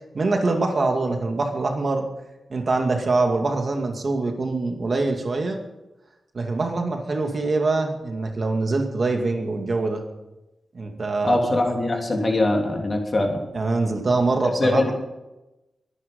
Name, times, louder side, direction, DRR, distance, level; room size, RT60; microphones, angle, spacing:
voice 1, 0.1-2.1 2.5-5.6 6.3-10.0 10.7-11.6 13.5-14.9, right 3 dB, 45° right, 3 dB, 2.3 m, -24 dB
voice 2, 11.2-13.4 14.6-14.9, left 2 dB, 35° left, 2 dB, 3.2 m, -22 dB
23.0 x 10.5 x 5.5 m, 1.0 s
wide cardioid pair, 110°, 0 cm